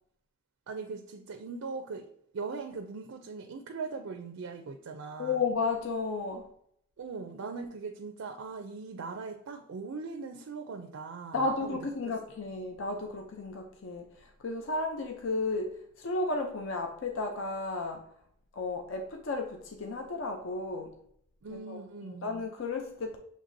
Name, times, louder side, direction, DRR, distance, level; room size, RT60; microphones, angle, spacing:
voice 1, 0.7-2.1 2.3-5.4 7.0-11.8 12.0-12.1 21.4-22.3, right 4 dB, 70° right, 4 dB, 0.4 m, -40 dB
voice 2, 5.2-6.5 11.3-18.1 18.5-20.9 21.5-21.8 22.1-23.2, left 3 dB, 65° left, 3 dB, 0.5 m, -33 dB
6.5 x 3.1 x 2.6 m, 0.68 s
head